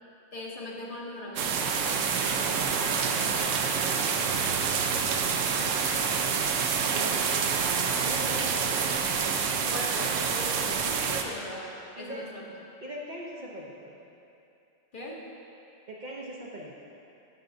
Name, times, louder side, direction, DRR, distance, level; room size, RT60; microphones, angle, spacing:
voice 1, 0.3-1.6 9.6-12.5 14.9-15.3, left 1 dB, 45° left, -3 dB, 1.0 m, -39 dB
sound 1, 1.4-11.2, right 6 dB, 85° right, 1.0 m, -27 dB
voice 2, 3.2-6.0 6.9-7.3 8.0-8.8 11.9-12.3 12.8-14.0 15.9-16.8, right 1 dB, 45° right, -4 dB, 0.7 m, -42 dB
12.0 x 6.8 x 2.6 m, 2.8 s
omnidirectional pair, 1.3 m